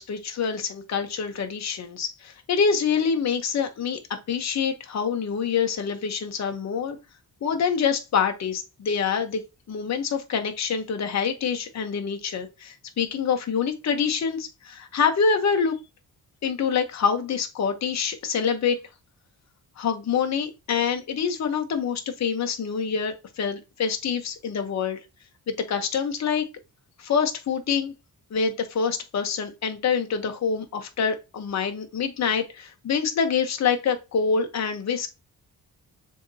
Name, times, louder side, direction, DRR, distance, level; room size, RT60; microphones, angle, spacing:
voice 1, 0.0-4.0 4.3-7.0 7.4-9.4 9.7-15.7 16.4-18.8 19.8-25.0 25.7-26.5 27.0-27.9 28.3-35.1, left 6 dB, 45° left, 0.9 m, -26 dB
6.9 x 2.8 x 2.7 m
cardioid pair, 110°, 37 cm